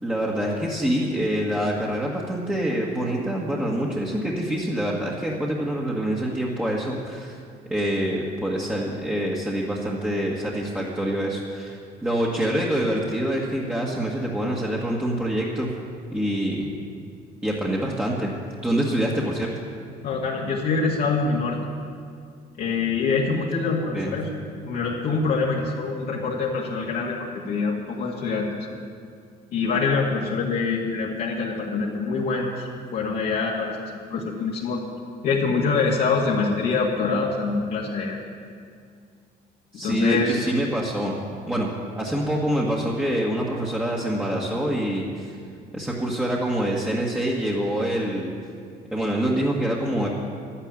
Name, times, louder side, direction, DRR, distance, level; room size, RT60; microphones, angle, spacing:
voice 1, 0.0-7.4 7.7-15.7 16.1-16.7 17.4-18.3 18.6-19.5 23.9-24.2 39.7-41.2 41.5-41.7 42.0-45.4 45.7-48.3 48.9-50.1, right 1 dB, 5° right, -5 dB, 1.7 m, -26 dB
voice 2, 20.0-21.6 22.6-24.3 24.7-28.5 29.5-32.6 32.9-34.8 35.2-38.2 39.8-40.4, left 4 dB, 65° left, -5 dB, 2.0 m, -25 dB
11.5 x 10.0 x 8.9 m, 2.2 s
cardioid pair, 110°, 17 cm